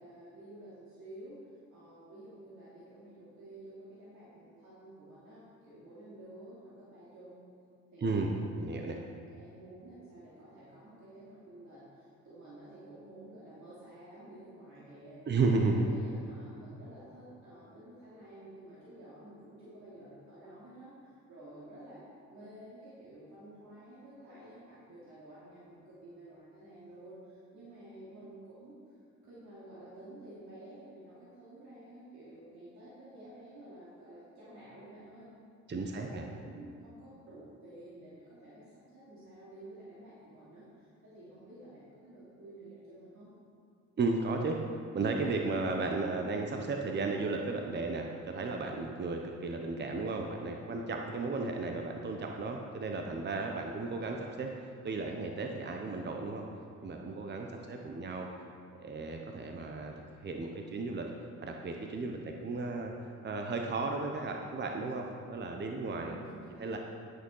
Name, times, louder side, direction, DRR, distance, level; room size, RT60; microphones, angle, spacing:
voice 1, 0.0-7.5 7.9-8.8 9.3-15.2 15.7-22.0 22.3-28.8 29.2-35.3 35.8-43.3 57.5-58.0 65.9-66.8, right 1 dB, 70° right, -9 dB, 2.9 m, -51 dB
voice 2, 8.0-9.0 15.3-15.9 35.7-36.2 44.0-44.6 44.9-54.5 54.8-56.4 56.8-58.3 58.8-59.9 60.2-61.1 61.4-62.9 63.2-66.1 66.6-66.8, right 3 dB, 35° right, 2 dB, 0.9 m, -34 dB
11.0 x 6.5 x 5.6 m, 2.3 s
cardioid pair, 90°, 30 cm